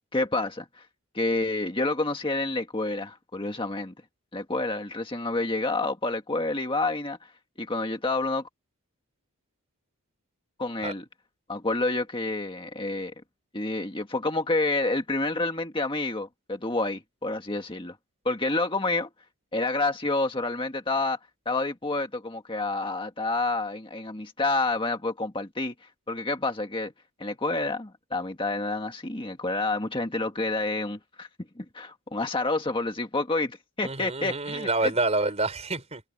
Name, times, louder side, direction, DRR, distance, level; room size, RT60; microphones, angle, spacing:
voice 1, 0.1-0.9 1.1-3.9 4.3-7.3 7.6-8.5 10.6-11.0 11.5-13.1 13.5-18.0 18.3-19.1 19.5-21.2 21.5-26.9 27.2-31.3 31.6-34.9, left 2 dB, 25° left, 1.7 m, -29 dB
voice 2, 33.8-36.0, right 2 dB, 30° right, 4.6 m, -27 dB
head